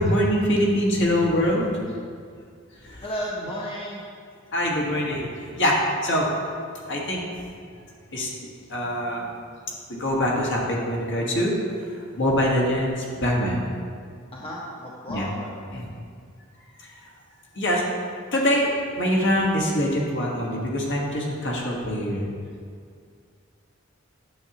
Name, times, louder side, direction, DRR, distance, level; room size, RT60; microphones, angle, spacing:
voice 1, 0.0-1.8 2.8-3.0 4.5-5.3 5.5-6.3 6.9-7.2 8.1-9.3 9.9-11.6 11.9-13.6 15.1-15.3 15.7-15.9 16.8-16.9 17.5-17.8 18.3-22.3, equal, 60° left, -3 dB, 1.5 m, -24 dB
voice 2, 3.0-4.0 14.3-15.5, equal, 30° left, -4 dB, 0.9 m, -33 dB
9.4 x 7.2 x 2.9 m, 2.2 s
head